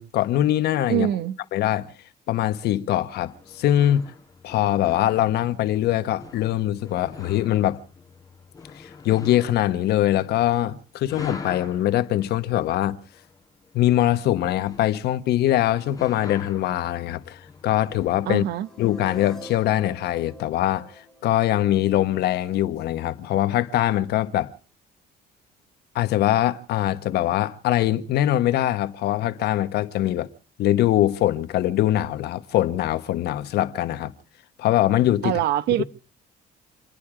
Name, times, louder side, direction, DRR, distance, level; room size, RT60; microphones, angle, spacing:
voice 1, 0.0-1.1 1.5-1.9 2.3-4.0 4.4-7.8 8.7-13.0 13.7-18.4 18.8-24.5 25.9-30.3 30.6-34.1 34.6-35.4 35.8-35.9, left 13 dB, 75° left, 1.2 m, -22 dB
voice 2, 0.9-1.4 18.3-18.7 35.2-35.8, right 13 dB, 75° right, 0.9 m, -23 dB
sound 1, 3.1-18.5, left 4 dB, 20° left, 3.8 m, -44 dB
sound 2, 18.2-22.2, equal, 5° left, 3.7 m, -45 dB
28.0 x 10.5 x 4.9 m
cardioid pair, 110°, 17 cm